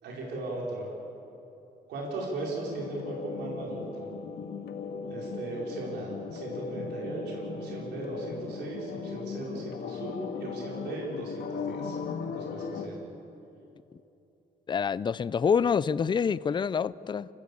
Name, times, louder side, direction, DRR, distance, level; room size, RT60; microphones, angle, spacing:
voice 1, 0.0-0.9 1.9-4.1 5.1-12.9, right 2 dB, 90° right, -3 dB, 4.9 m, -37 dB
sound 1, 2.5-12.9, left 5 dB, 70° left, 1.8 m, -37 dB
voice 2, 14.7-17.3, left 6 dB, 25° left, 18 dB, 0.5 m, -26 dB
29.0 x 14.5 x 8.5 m, 2.9 s
cardioid pair, 105°, 17 cm